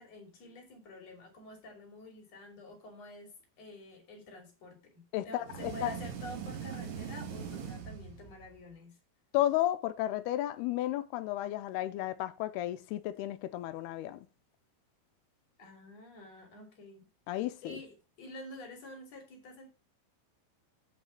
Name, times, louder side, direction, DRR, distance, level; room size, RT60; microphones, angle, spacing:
voice 1, 0.0-9.0 15.6-17.1 17.6-19.7, left 1 dB, 45° left, 3.7 m, -49 dB
voice 2, 5.1-5.9 9.3-14.2 17.3-17.8, left 14 dB, 85° left, 2.7 m, -33 dB
sound 1, 5.4-8.6, right 7 dB, 55° right, 2.4 m, -41 dB
9.0 x 5.5 x 5.7 m
omnidirectional pair, 4.5 m